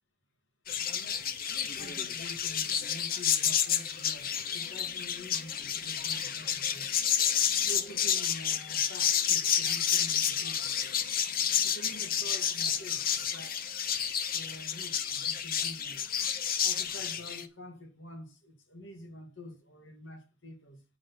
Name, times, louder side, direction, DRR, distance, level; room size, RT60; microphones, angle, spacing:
sound 1, 0.7-17.5, left 8 dB, 45° left, 0.8 m, -30 dB
voice 1, 1.5-6.9 7.5-10.9 11.6-13.6 14.3-16.1 16.6-20.8, equal, 65° left, 2.6 m, -47 dB
8.7 x 5.8 x 6.1 m
head